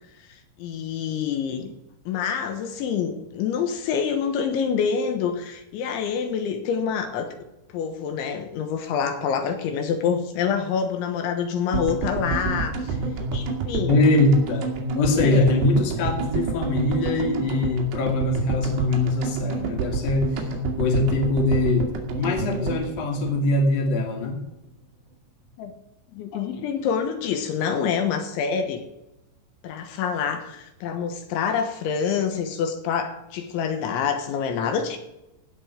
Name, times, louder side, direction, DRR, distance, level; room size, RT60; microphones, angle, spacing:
voice 1, 0.3-1.7 2.1-7.3 7.7-13.0 13.3-14.0 15.2-15.5 25.6-25.7 26.1-28.8 29.6-35.0, left 7 dB, 80° left, 7 dB, 3.6 m, -26 dB
sound 1, 11.7-24.0 24.2-24.3 24.5-24.6, right 4 dB, 70° right, 4.0 m, -28 dB
voice 2, 13.9-14.7 14.9-24.4 26.3-26.4, left 2 dB, 45° left, 2 dB, 3.0 m, -23 dB
16.5 x 5.6 x 7.9 m, 0.94 s
omnidirectional pair, 5.3 m